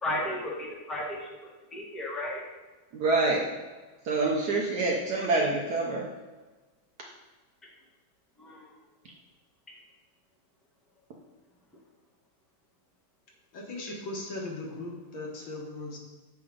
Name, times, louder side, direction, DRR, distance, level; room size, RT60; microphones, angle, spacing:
voice 1, 0.0-2.5 8.4-8.7, left 1 dB, ahead, -4 dB, 1.0 m, -34 dB
voice 2, 2.9-3.5 4.0-6.1, right 3 dB, 60° right, -2 dB, 1.1 m, -26 dB
voice 3, 13.5-16.0, left 2 dB, 65° left, -2 dB, 1.9 m, -38 dB
8.0 x 4.9 x 3.6 m, 1.2 s
omnidirectional pair, 2.4 m